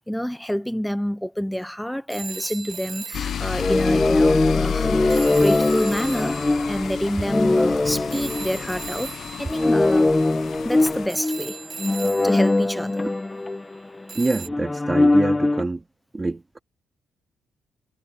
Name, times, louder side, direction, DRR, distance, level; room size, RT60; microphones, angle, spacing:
voice 1, 0.0-10.1 10.6-11.6 12.2-13.1, equal, ahead, 0.7 m, -28 dB
sound 1, 2.1-4.6 5.1-13.6 14.1-14.5, right 5 dB, 40° right, 1.9 m, -39 dB
sound 2, 3.1-11.1, left 8 dB, 60° left, 1.0 m, -31 dB
sound 3, 3.6-9.1 9.5-14.0 14.5-15.6, left 2 dB, 15° left, 1.5 m, -21 dB
voice 2, 14.1-15.8 16.1-16.6, right 3 dB, 20° right, 2.7 m, -26 dB
cardioid pair, 90°, 0 cm